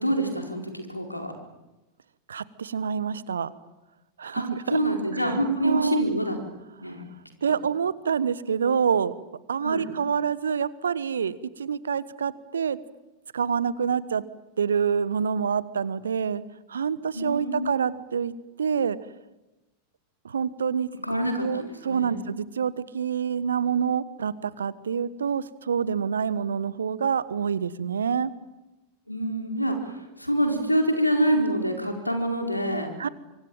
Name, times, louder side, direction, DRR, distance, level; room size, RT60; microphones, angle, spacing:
voice 1, 0.0-1.3 4.3-6.4 6.8-7.0 9.6-9.8 17.1-17.7 21.0-22.2 29.1-32.9, right 1 dB, 90° left, 4 dB, 4.6 m, -26 dB
voice 2, 2.3-3.5 4.2-4.8 5.1-5.4 5.6-6.0 7.4-9.1 9.5-12.8 13.3-14.2 14.6-16.4 16.7-18.3 18.6-19.0 20.2-20.9 21.4-28.3 33.0-33.1, right 7 dB, 70° right, 18 dB, 1.2 m, -27 dB
24.5 x 24.5 x 9.0 m, 1.0 s
figure-of-eight pair, 90°, 0 cm